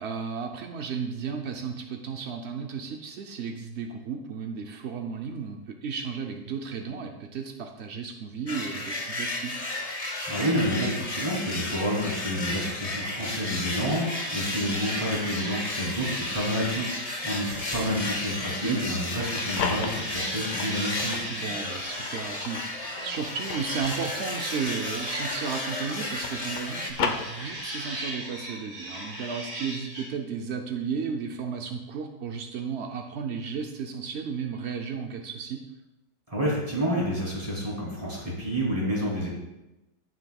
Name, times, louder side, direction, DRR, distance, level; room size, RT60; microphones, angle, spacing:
voice 1, 0.0-9.6 18.6-18.8 21.3-35.6, right 6 dB, 70° right, 4 dB, 0.6 m, -34 dB
sound 1, 8.5-26.9, left 2 dB, 30° left, 0.7 m, -33 dB
voice 2, 10.3-21.2 36.3-39.3, equal, 20° right, -5 dB, 3.0 m, -29 dB
sound 2, 13.2-18.9 19.2-30.1, right 1 dB, 45° right, 3.8 m, -39 dB
sound 3, 19.1-21.3 21.8-25.6 25.9-27.9, left 6 dB, 70° left, 1.4 m, -35 dB
16.5 x 6.2 x 2.3 m, 0.98 s
omnidirectional pair, 1.9 m